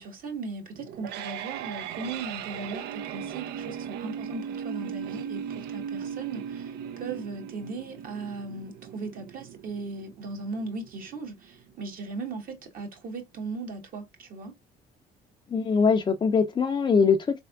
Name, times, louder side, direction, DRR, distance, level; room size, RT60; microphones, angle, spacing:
voice 1, 0.0-14.6, right 3 dB, 55° right, 1.4 m, -38 dB
sound 1, 0.8-11.8, right 8 dB, 80° right, 0.5 m, -38 dB
voice 2, 15.5-17.4, left 5 dB, 30° left, 0.5 m, -22 dB
3.5 x 3.4 x 2.3 m
cardioid pair, 110°, 17 cm